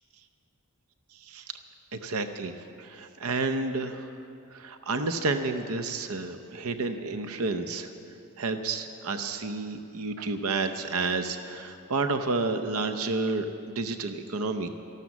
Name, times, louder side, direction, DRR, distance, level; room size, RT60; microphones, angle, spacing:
voice 1, 1.1-1.6 1.9-4.1 4.5-7.9 8.4-14.7, right 3 dB, 80° right, 8 dB, 0.7 m, -30 dB
13.5 x 12.5 x 7.2 m, 2.6 s
head